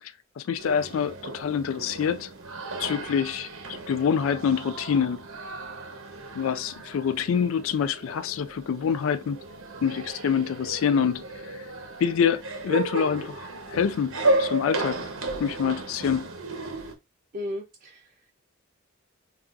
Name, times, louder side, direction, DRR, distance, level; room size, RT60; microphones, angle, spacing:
voice 1, 0.0-2.3 2.8-5.3 6.3-9.4 9.8-11.7 12.0-15.1 15.4-16.3, left 7 dB, 75° left, 0.3 m, -26 dB
sound 1, 0.6-16.9, right 2 dB, 85° right, 0.9 m, -33 dB
voice 2, 17.3-18.3, left 1 dB, 40° right, 0.5 m, -36 dB
5.8 x 2.4 x 2.4 m
head